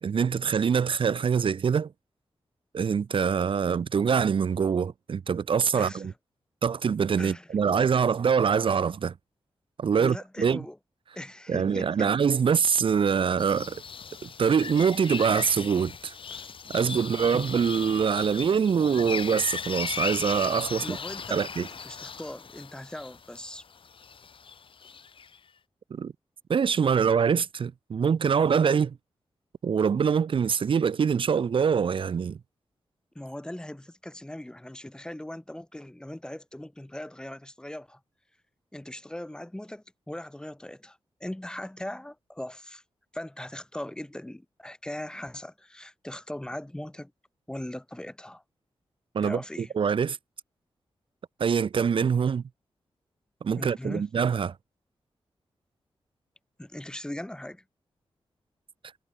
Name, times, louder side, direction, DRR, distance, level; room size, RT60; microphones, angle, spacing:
voice 1, 0.0-1.9 2.7-6.1 6.6-9.1 9.8-10.6 11.5-13.8 14.2-16.1 16.7-21.0 21.3-21.7 25.9-26.1 26.5-29.0 29.6-32.4 49.1-50.2 51.4-52.4 53.4-54.5, right 6 dB, 60° right, 0.8 m, -24 dB
voice 2, 5.7-6.1 7.2-7.5 10.0-10.8 11.2-12.1 16.3-16.8 17.3-17.5 20.8-23.6 33.2-38.0 38.7-42.8 43.1-47.1 47.5-48.4 49.2-49.7 53.5-54.0 56.6-57.6, left 1 dB, 10° left, 1.8 m, -39 dB
sound 1, 13.4-25.4, left 6 dB, 60° left, 2.1 m, -37 dB
wide cardioid pair, 115°, 10 cm